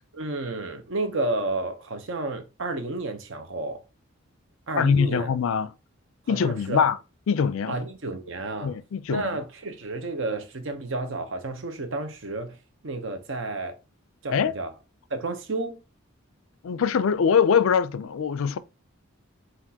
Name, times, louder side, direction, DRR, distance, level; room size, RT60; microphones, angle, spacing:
voice 1, 0.1-3.8 4.7-5.3 6.3-6.9 7.7-8.8 9.1-12.6 12.8-13.8 14.2-14.7 15.1-15.8, right 2 dB, 60° right, 0.7 m, -31 dB
voice 2, 4.8-5.7 6.3-7.0 7.3-7.8 8.6-9.4 14.3-14.5 16.6-18.6, left 6 dB, 70° left, 0.4 m, -23 dB
5.8 x 2.5 x 2.8 m
head